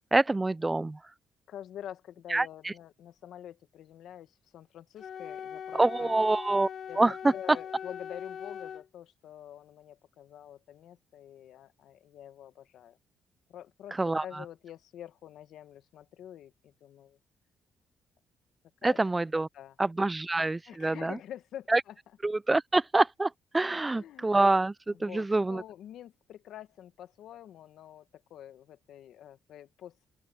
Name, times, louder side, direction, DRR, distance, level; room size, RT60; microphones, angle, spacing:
voice 1, 0.1-1.0 2.3-2.5 5.7-6.7 7.0-7.1 14.0-14.2 18.8-19.5 19.8-21.2 21.7-21.8 22.2-25.6, right 2 dB, 20° right, 0.4 m, -26 dB
voice 2, 1.5-6.1 6.9-13.0 13.5-17.2 18.8-19.0 19.3-19.8 20.7-22.2 23.8-24.3 24.9-30.1, left 10 dB, 75° left, 1.6 m, -47 dB
Wind instrument woodwind instrument, 5.0-8.9, left 8 dB, 60° left, 1.5 m, -41 dB
open air
cardioid pair, 90°, 0 cm